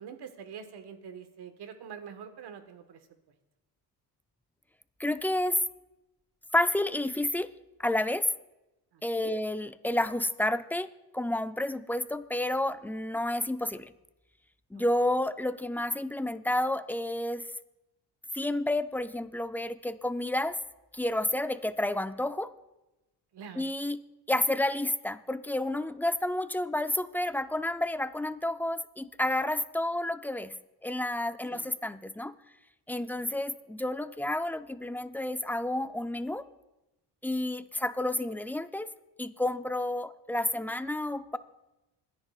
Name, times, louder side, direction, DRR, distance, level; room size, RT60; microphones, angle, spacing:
voice 1, 0.0-3.1 8.9-9.4 14.7-14.8 23.3-23.7 31.5-31.7 33.0-33.4, right 7 dB, 65° right, 8 dB, 1.5 m, -45 dB
voice 2, 5.0-5.6 6.5-7.5 7.8-8.2 9.0-13.9 14.7-17.5 18.3-20.6 20.9-22.5 23.6-24.0 24.3-30.5 30.8-32.3 32.9-36.5 37.2-38.9 39.2-41.4, left 1 dB, 5° left, 11 dB, 0.5 m, -30 dB
27.0 x 10.5 x 2.4 m, 0.98 s
cardioid pair, 80°, 42 cm